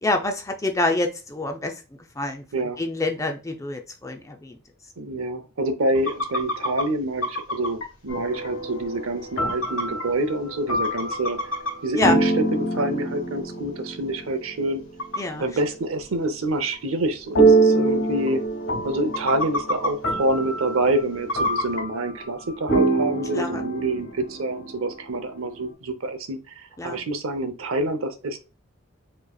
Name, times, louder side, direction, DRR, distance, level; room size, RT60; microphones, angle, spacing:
voice 1, 0.0-1.8 2.2-4.6 12.0-12.2 15.2-15.5 23.3-23.6 26.8-27.0, left 2 dB, 15° left, 4 dB, 0.5 m, -26 dB
voice 2, 5.0-11.4 11.8-14.8 15.4-18.4 18.8-26.4 26.8-28.4, right 1 dB, 75° right, 9 dB, 0.7 m, -27 dB
sound 1, 5.9-6.8 7.2-7.9 8.4-8.5 8.8-8.9 9.4-10.0 10.5-10.6 10.8-11.7 12.1-12.2 13.4-13.5 13.9-14.0 15.0-15.2 16.0-16.1 16.7-16.8 17.1-17.2 17.4-17.5 18.0-18.1 18.3-18.6 19.0-20.1 21.3-21.8, left 1 dB, 80° left, 1.4 m, -27 dB
sound 2, 8.1-15.2 17.4-25.0, right 3 dB, 60° left, 2.2 m, -25 dB
4.7 x 3.2 x 2.3 m, 0.31 s
head